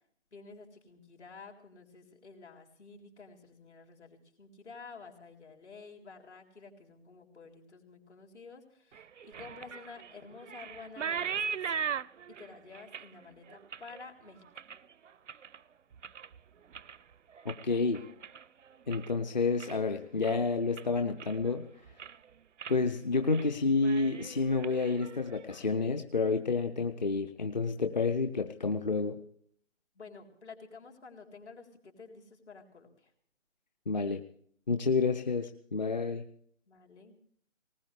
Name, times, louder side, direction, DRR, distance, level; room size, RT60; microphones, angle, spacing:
voice 1, 0.3-11.8 12.3-14.6 29.9-33.1 36.7-37.2, left 4 dB, 60° left, 2 dB, 3.9 m, -51 dB
sound 1, 8.9-15.6 15.9-16.4 16.7-19.2 19.5-19.9 20.2-20.4 20.8-21.6 21.9-22.2 22.6-22.8 23.1-23.5 23.8-25.6, right 7 dB, 70° right, 0.5 m, -40 dB
voice 2, 17.4-18.0 18.9-21.7 22.7-29.2 33.9-34.2 34.7-36.2, left 4 dB, 35° left, 8 dB, 0.7 m, -29 dB
19.5 x 19.5 x 3.3 m, 0.62 s
figure-of-eight pair, 150°, 38 cm